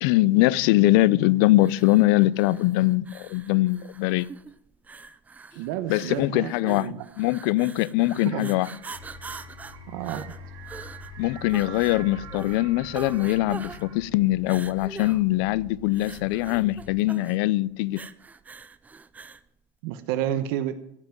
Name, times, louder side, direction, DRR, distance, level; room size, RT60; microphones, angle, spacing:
voice 1, 0.0-4.3 5.9-8.7 11.2-18.0, left 17 dB, 70° left, 0.5 m, -22 dB
sound 1, 1.6-19.5, right 4 dB, 10° right, 0.5 m, -44 dB
voice 2, 5.5-7.1 8.2-8.5 9.9-10.2 19.8-20.7, right 11 dB, 75° right, 1.2 m, -30 dB
sound 2, 8.2-14.0, right 9 dB, 40° right, 3.9 m, -46 dB
sound 3, 8.9-17.0, left 4 dB, 30° left, 2.9 m, -46 dB
15.0 x 6.1 x 9.2 m
cardioid pair, 155°, 13 cm